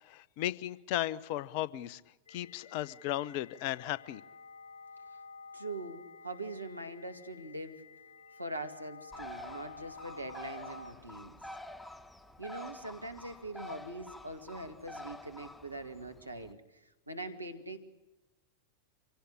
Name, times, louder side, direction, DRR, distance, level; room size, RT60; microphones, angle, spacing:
voice 1, 0.0-2.0 2.3-4.2, left 14 dB, 45° left, 19 dB, 0.9 m, -35 dB
sound 1, 2.3-10.9, left 4 dB, 70° left, 2.9 m, -51 dB
voice 2, 5.5-7.8 8.4-11.4 12.4-17.8, right 2 dB, 85° right, 6 dB, 2.4 m, -42 dB
Bird, 9.1-16.5, left 1 dB, 5° left, 1.2 m, -48 dB
26.5 x 17.0 x 10.0 m, 0.99 s
figure-of-eight pair, 90°, 0 cm